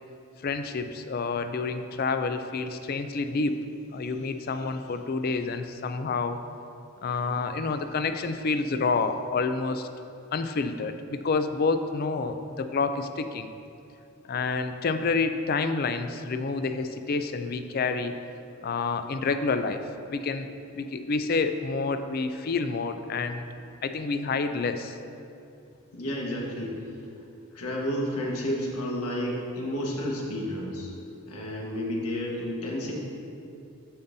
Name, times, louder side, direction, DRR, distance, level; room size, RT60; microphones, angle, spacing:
voice 1, 0.4-3.6 3.9-6.4 7.0-9.9 10.3-13.5 14.3-18.1 18.6-19.8 20.1-20.5 20.7-23.5 23.8-25.0, left 4 dB, 45° left, 9 dB, 0.3 m, -28 dB
voice 2, 25.9-26.7 27.5-30.9 31.3-33.0, equal, 90° left, -2 dB, 1.4 m, -31 dB
13.5 x 5.3 x 2.7 m, 2.6 s
head